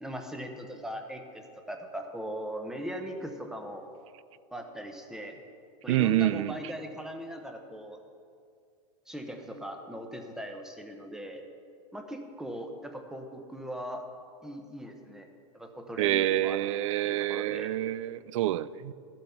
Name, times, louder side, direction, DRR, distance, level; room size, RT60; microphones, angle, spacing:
voice 1, 0.0-3.9 4.5-5.4 5.8-8.0 9.1-11.4 11.9-14.0 14.4-15.3 15.5-17.7, equal, 5° right, 0.9 m, -39 dB
voice 2, 5.9-6.6 16.0-18.9, right 14 dB, 70° right, 0.4 m, -27 dB
13.0 x 7.5 x 5.7 m
supercardioid pair, 145°, 16 cm